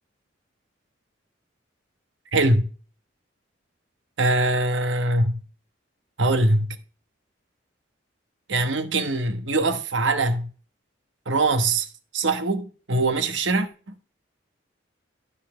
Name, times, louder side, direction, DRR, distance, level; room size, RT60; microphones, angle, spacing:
voice 1, 2.3-2.6 4.2-5.3 6.2-6.8 8.5-10.5 11.3-11.9 12.1-13.7, right 2 dB, 75° right, 1.2 m, -22 dB
12.5 x 4.3 x 5.7 m
head